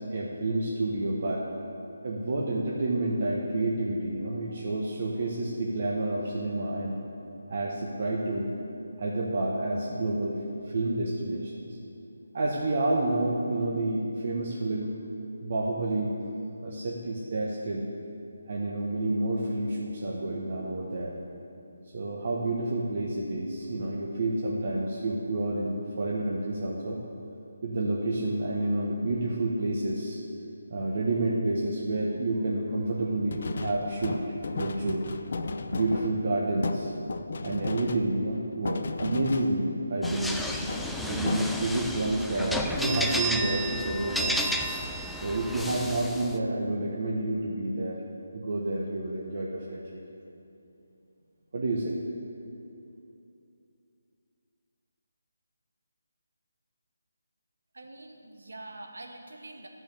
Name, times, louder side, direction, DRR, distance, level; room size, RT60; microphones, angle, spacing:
voice 1, 0.1-1.4 2.0-7.0 7.5-8.5 9.0-10.4 10.6-11.8 12.3-14.9 15.4-16.1 16.6-17.9 18.5-21.1 21.9-27.0 27.6-30.2 30.7-34.2 34.6-35.0 35.7-36.9 37.4-40.4 41.1-44.6 45.2-48.0 48.3-50.0 51.5-52.0, right 2 dB, 50° right, -3 dB, 1.3 m, -29 dB
sound 1, 33.3-39.8 40.0-41.9, left 3 dB, 50° left, 0.6 m, -35 dB
sound 2, 40.0-46.3, equal, ahead, 0.3 m, -32 dB
voice 2, 57.7-59.7, right 2 dB, 80° right, 2 dB, 1.5 m, -45 dB
12.0 x 6.2 x 7.0 m, 2.7 s
figure-of-eight pair, 165°, 0 cm